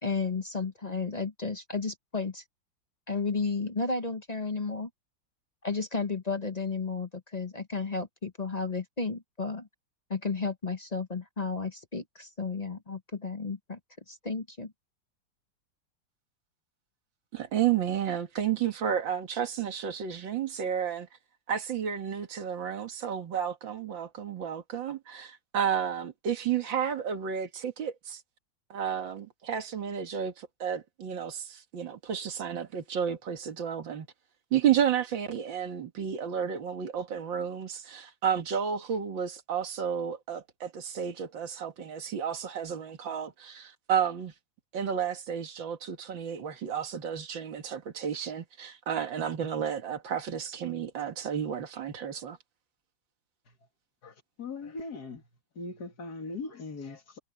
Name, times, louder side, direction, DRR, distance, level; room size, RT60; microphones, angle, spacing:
voice 1, 0.0-2.4 3.1-4.9 5.6-9.7 10.1-13.8 14.1-14.7, left 4 dB, 30° left, 0.9 m, -33 dB
voice 2, 17.3-21.1 21.5-28.2 28.7-34.1 34.5-44.3 44.7-52.4, right 8 dB, 85° right, 2.5 m, -31 dB
voice 3, 54.0-55.2 55.5-57.2, left 3 dB, 55° left, 3.0 m, -40 dB
omnidirectional pair, 2.0 m